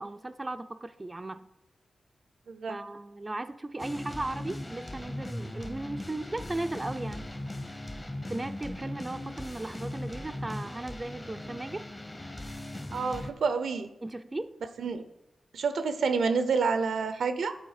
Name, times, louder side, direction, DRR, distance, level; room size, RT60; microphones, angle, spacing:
voice 1, 0.0-1.4 2.7-7.3 8.3-11.8 14.0-14.5, right 2 dB, 25° right, 10 dB, 0.3 m, -36 dB
voice 2, 2.5-2.8 12.9-13.9 14.8-15.0 15.5-17.6, right 5 dB, 85° right, 10 dB, 0.6 m, -28 dB
sound 1, 3.8-13.3, left 1 dB, 25° left, 0.8 m, -39 dB
11.0 x 3.9 x 4.9 m, 0.90 s
cardioid pair, 70°, 0 cm